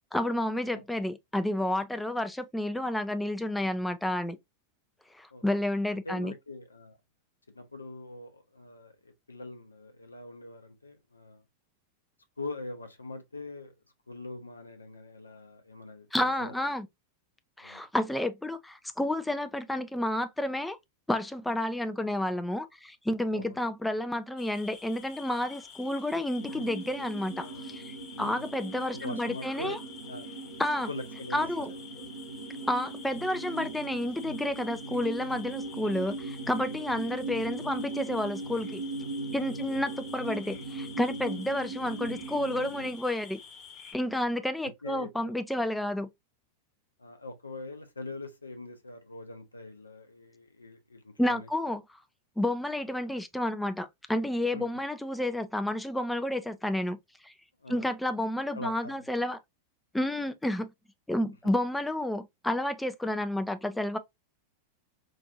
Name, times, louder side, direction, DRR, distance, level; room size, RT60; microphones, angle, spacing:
voice 1, 0.1-4.4 5.1-6.3 16.1-16.9 17.6-20.8 21.1-29.8 30.6-30.9 31.3-31.7 32.7-38.8 39.3-43.4 43.9-46.1 51.2-51.8 52.4-57.0 57.2-57.3 57.7-59.4 59.9-60.7 61.1-64.0, left 1 dB, 5° left, 0.4 m, -30 dB
voice 2, 5.9-7.0 7.5-11.4 12.4-13.7 14.1-16.1 16.4-16.5 17.6-17.9 23.3-23.6 28.2-28.5 29.0-29.8 30.1-30.3 30.9-31.7 36.8-36.9 39.5-39.6 44.1-44.2 44.6-45.4 47.0-51.5 54.5-54.7 57.6-57.9 58.5-59.0, left 2 dB, 80° left, 0.6 m, -42 dB
sound 1, 24.4-44.0, left 7 dB, 35° left, 1.1 m, -49 dB
sound 2, 26.4-43.0, right 3 dB, 65° right, 1.0 m, -39 dB
4.0 x 2.5 x 2.4 m
figure-of-eight pair, 90°, 0 cm